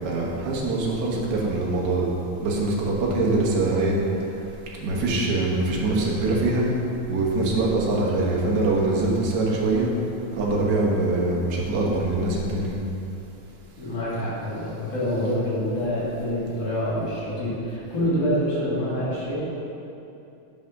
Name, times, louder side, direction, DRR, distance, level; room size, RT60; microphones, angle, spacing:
voice 1, 0.0-2.1 2.4-4.4 4.8-6.7 7.1-9.9 10.3-12.8, right 2 dB, 60° right, -3 dB, 1.1 m, -23 dB
voice 2, 13.8-19.4, equal, 55° left, -8 dB, 3.1 m, -26 dB
8.4 x 5.0 x 6.0 m, 2.8 s
omnidirectional pair, 3.7 m